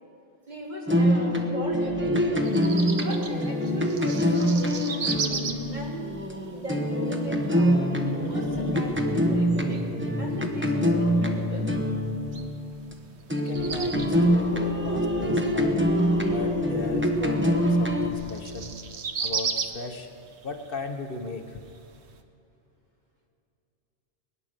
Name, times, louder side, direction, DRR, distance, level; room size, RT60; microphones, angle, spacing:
voice 1, 0.5-2.4 2.9-6.1 6.5-7.8 8.2-9.8 10.2-11.7 14.8-15.1, right 1 dB, 45° right, -3 dB, 3.2 m, -38 dB
sound 1, 0.9-12.9 13.3-18.1, equal, 10° right, 1.1 m, -25 dB
sound 2, 2.4-22.2, right 5 dB, 85° right, 1.3 m, -38 dB
voice 2, 13.4-15.8 16.3-18.8 19.2-20.1 20.4-21.6, left 3 dB, 60° left, 5 dB, 1.2 m, -37 dB
sound 3, 13.5-18.6, equal, 60° right, 2.3 m, -46 dB
21.0 x 9.8 x 6.7 m, 2.6 s
omnidirectional pair, 1.1 m